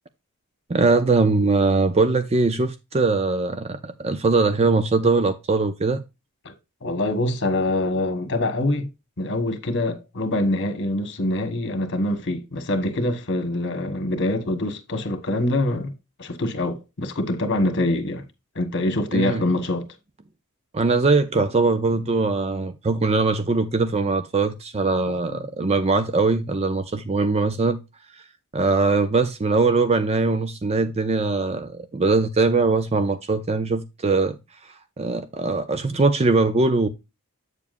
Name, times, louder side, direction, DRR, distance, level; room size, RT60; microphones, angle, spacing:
voice 1, 0.7-6.0 19.1-19.4 20.7-27.8 28.5-34.4 34.6-36.9, right 3 dB, 30° right, 0.5 m, -21 dB
voice 2, 6.8-8.9 9.2-15.9 16.2-18.2 18.5-19.9 25.1-25.4 35.9-36.0, left 1 dB, 55° left, 1.5 m, -25 dB
8.2 x 7.2 x 2.5 m
head